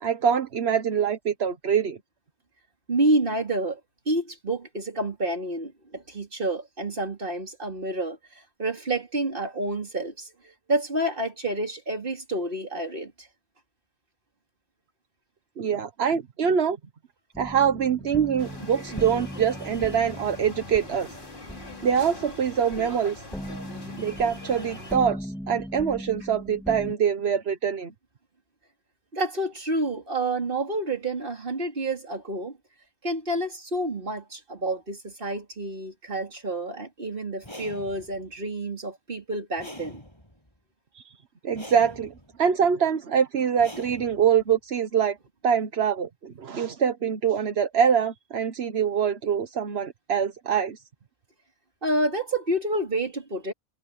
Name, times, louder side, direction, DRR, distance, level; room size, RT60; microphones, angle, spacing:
voice 1, 0.0-2.0 15.6-16.8 17.4-21.1 21.8-23.2 24.0-27.9 40.9-41.1 41.4-42.1 42.4-45.2 45.4-50.8, right 7 dB, 80° right, 1.3 m, -24 dB
voice 2, 2.9-3.8 4.1-13.3 29.1-32.6 33.0-40.0 51.8-53.5, right 1 dB, 55° right, 3.3 m, -29 dB
sound 1, 17.3-26.9, equal, ahead, 1.3 m, -39 dB
sound 2, 18.4-25.0, left 1 dB, 55° left, 3.3 m, -42 dB
sound 3, 37.4-38.3 39.6-40.5 41.5-42.4 43.6-44.5, equal, 25° left, 8.2 m, -44 dB
omnidirectional pair, 1.1 m